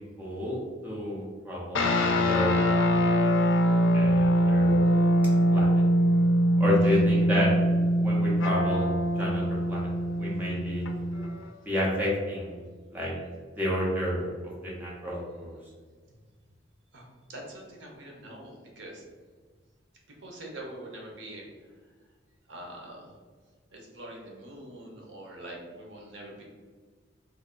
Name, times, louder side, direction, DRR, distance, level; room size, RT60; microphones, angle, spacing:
voice 1, 0.2-2.6 3.9-4.9 5.5-5.8 6.6-7.5 8.0-8.9 9.2-9.9 10.2-10.8 11.6-12.6 12.9-13.1 13.6-14.3 14.6-15.6, left 1 dB, 10° right, -5 dB, 0.7 m, -30 dB
sound 1, 1.7-11.4, equal, 75° left, 0.4 m, -23 dB
voice 2, 16.9-19.0 20.2-21.7 22.5-23.1 23.7-26.4, right 1 dB, 70° right, -1 dB, 0.8 m, -44 dB
3.2 x 2.2 x 3.7 m, 1.5 s
head